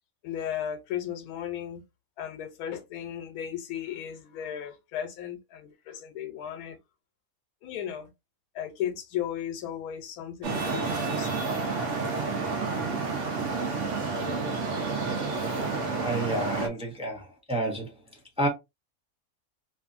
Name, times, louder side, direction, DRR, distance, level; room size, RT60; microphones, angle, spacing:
voice 1, 0.2-1.8 2.2-6.8 7.6-8.1 8.5-11.5 16.6-16.8, left 10 dB, 90° left, 1.1 m, -35 dB
Traffic noise roadway noise, 10.4-16.7, right 4 dB, 65° right, 0.9 m, -30 dB
voice 2, 16.0-17.9 18.4-18.5, right 1 dB, 10° right, 0.4 m, -30 dB
2.6 x 2.5 x 2.4 m
omnidirectional pair, 1.5 m